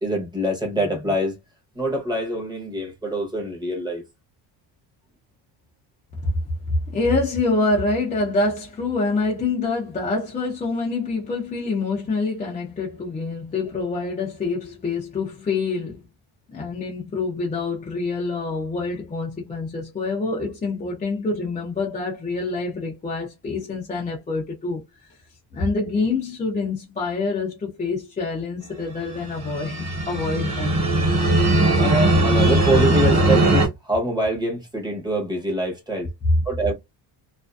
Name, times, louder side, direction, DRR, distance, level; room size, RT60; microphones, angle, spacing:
voice 1, 0.0-1.4 1.8-4.0 31.8-36.1 36.5-36.7, right 1 dB, 10° right, 0.7 m, -25 dB
voice 2, 6.9-16.0 16.5-24.8 25.5-30.8, left 3 dB, 15° left, 0.4 m, -26 dB
sound 1, 29.1-33.7, right 1 dB, 35° right, 1.0 m, -19 dB
2.5 x 2.4 x 2.2 m
cardioid pair, 175°, 49 cm